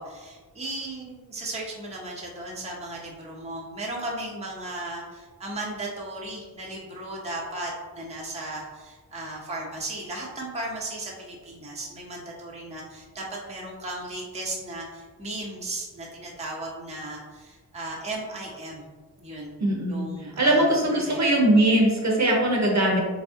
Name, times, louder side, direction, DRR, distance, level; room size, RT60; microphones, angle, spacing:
voice 1, 0.0-18.9 19.2-19.6 19.8-21.3, right 2 dB, 15° right, -4 dB, 0.7 m, -36 dB
voice 2, 19.6-23.0, right 1 dB, 45° right, -2 dB, 0.8 m, -21 dB
3.3 x 2.6 x 2.4 m, 1.4 s
cardioid pair, 50°, 40 cm